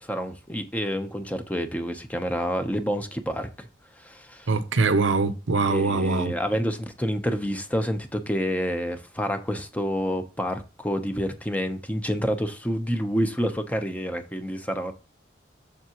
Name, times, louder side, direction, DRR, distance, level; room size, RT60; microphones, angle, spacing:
voice 1, 0.0-3.7 4.0-4.5 5.7-14.9, equal, 10° left, 0.8 m, -28 dB
voice 2, 4.5-6.4, right 3 dB, 90° right, 0.7 m, -23 dB
7.3 x 6.8 x 3.0 m
head